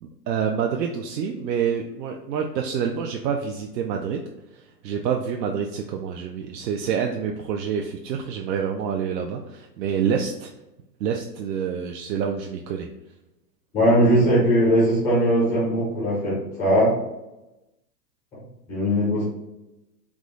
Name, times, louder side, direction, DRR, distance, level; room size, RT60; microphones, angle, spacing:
voice 1, 0.0-4.2 4.5-10.5 11.0-12.9, right 7 dB, 80° right, 2 dB, 0.5 m, -27 dB
voice 2, 13.7-16.9 18.7-19.2, equal, 5° left, -8 dB, 0.4 m, -19 dB
3.6 x 2.0 x 3.6 m, 0.96 s
hypercardioid pair, 140°, 50 cm